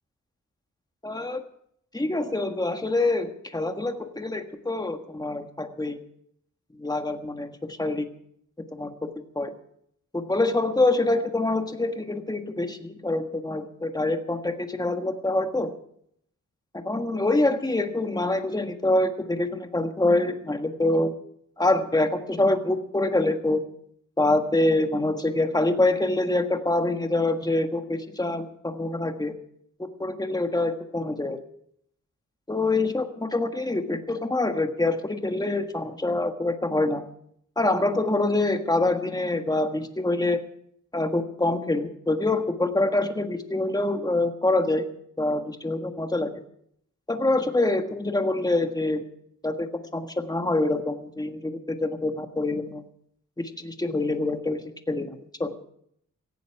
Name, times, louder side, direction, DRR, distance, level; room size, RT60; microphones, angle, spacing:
voice 1, 1.0-1.4 1.9-6.0 6.8-8.1 8.7-9.5 10.1-15.7 16.7-21.1 21.6-23.6 24.2-29.3 29.8-31.4 32.5-37.0 37.6-40.4 40.9-44.8 45.2-46.3 47.1-49.0 49.4-52.8 53.4-55.5, left 2 dB, 10° left, 6 dB, 1.6 m, -25 dB
18.0 x 15.0 x 4.8 m, 0.70 s
wide cardioid pair, 115°, 32 cm